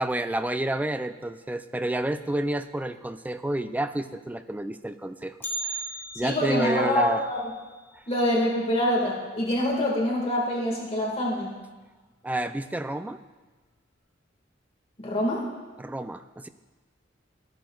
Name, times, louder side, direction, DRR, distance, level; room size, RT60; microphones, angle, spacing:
voice 1, 0.0-5.4 5.6-5.8 6.2-7.2 7.9-8.0 12.2-13.2 15.8-16.5, right 1 dB, 10° right, 10 dB, 0.3 m, -29 dB
Bell, 5.4-9.5 9.8-9.9 10.4-10.5 11.3-11.4 12.1-12.4 12.8-12.9, right 2 dB, 10° left, 1.2 m, -39 dB
voice 2, 6.1-7.5 8.1-11.5 15.0-15.4, left 1 dB, 35° left, -3 dB, 1.8 m, -25 dB
13.0 x 10.5 x 2.3 m, 1.3 s
head